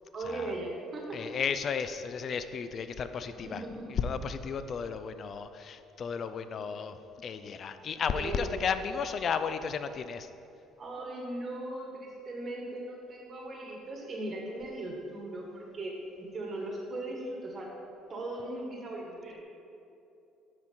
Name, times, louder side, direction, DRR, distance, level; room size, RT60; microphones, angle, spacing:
voice 1, 0.1-1.3 3.3-3.9 8.1-8.5 10.8-17.7 18.1-19.4, right 2 dB, 35° right, -1 dB, 1.3 m, -38 dB
voice 2, 1.1-3.6 3.9-10.3, left 6 dB, 45° left, 11 dB, 0.3 m, -34 dB
9.8 x 4.4 x 4.3 m, 2.7 s
cardioid pair, 115°, 0 cm